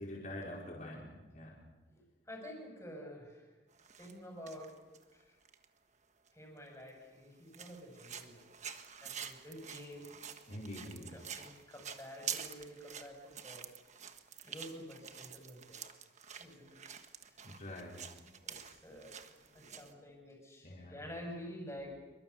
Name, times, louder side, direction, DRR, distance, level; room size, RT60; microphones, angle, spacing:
voice 1, 0.0-1.6 10.5-11.1 17.4-18.0 19.6-19.7 20.6-21.0, left 1 dB, 40° left, -4 dB, 5.1 m, -45 dB
voice 2, 1.9-3.6 4.0-4.8 5.1-5.4 6.3-8.5 9.0-10.2 11.1-13.7 14.4-15.8 16.4-16.8 17.3-17.4 18.4-19.2 19.5-22.0, equal, 15° left, 2 dB, 6.5 m, -49 dB
sound 1, 3.7-4.2 4.5-5.7 6.3-6.4 6.9-7.0 7.5-19.9, right 8 dB, 35° right, 1.4 m, -47 dB
27.5 x 23.5 x 7.0 m, 1.2 s
head